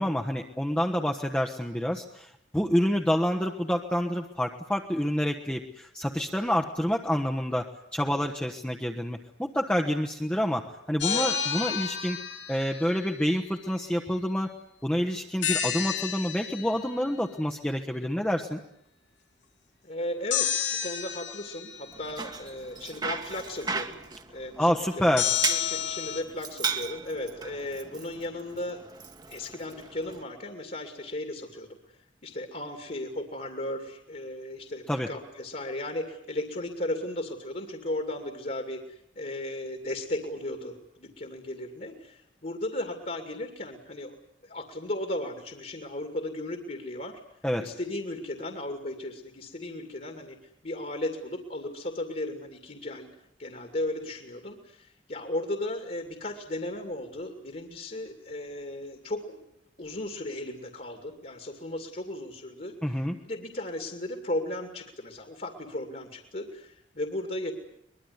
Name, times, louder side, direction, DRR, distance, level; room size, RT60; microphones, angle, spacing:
voice 1, 0.0-12.2 12.5-14.5 14.8-18.6 24.6-25.3 34.9-35.1 47.4-47.7 62.8-63.2, equal, 5° left, 2 dB, 1.1 m, -28 dB
sound 1, 11.0-13.1 15.4-16.9 20.3-22.0 25.2-26.2, left 9 dB, 80° left, 3.2 m, -30 dB
voice 2, 19.8-24.0 24.3-24.7 25.0-28.8 29.3-32.0 32.2-44.1 44.4-47.2 47.6-50.4 50.6-53.1 53.4-59.4 59.8-67.5, left 1 dB, 45° left, 5 dB, 2.5 m, -36 dB
Bicycle, 21.9-30.2, right 5 dB, 20° right, 1.4 m, -37 dB
23.5 x 21.5 x 9.6 m, 0.76 s
head